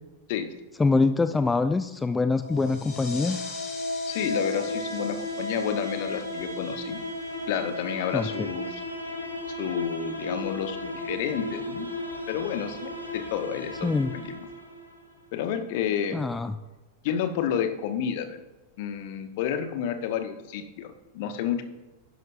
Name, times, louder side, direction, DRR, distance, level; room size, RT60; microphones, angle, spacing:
voice 1, 0.8-3.4 8.1-8.5 13.8-14.1 16.1-16.6, left 3 dB, 10° left, 10 dB, 0.4 m, -24 dB
sound 1, 2.1-15.1, left 1 dB, 85° left, 1.8 m, -35 dB
sound 2, 2.5-7.8, left 4 dB, 30° left, 1.8 m, -44 dB
voice 2, 4.0-7.0 7.5-8.8 9.6-11.9 12.3-14.5 15.3-16.2 17.0-18.4 18.8-21.6, left 8 dB, 50° left, 8 dB, 1.0 m, -30 dB
11.0 x 10.5 x 2.6 m, 1.1 s
figure-of-eight pair, 90°, 0 cm